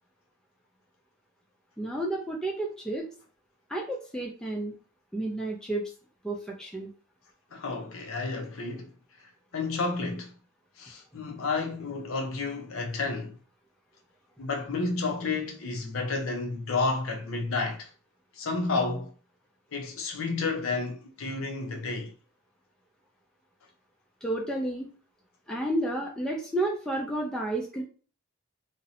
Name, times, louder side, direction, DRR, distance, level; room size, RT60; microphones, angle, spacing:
voice 1, 1.8-3.1 3.7-4.7 5.1-5.9 6.2-6.9 24.2-24.9 25.5-27.8, right 1 dB, 5° left, 0.3 m, -31 dB
voice 2, 7.5-8.9 9.5-10.3 10.8-13.4 14.4-17.9 18.3-19.1 19.7-22.1, left 3 dB, 65° left, 0.5 m, -31 dB
2.6 x 2.0 x 2.7 m
head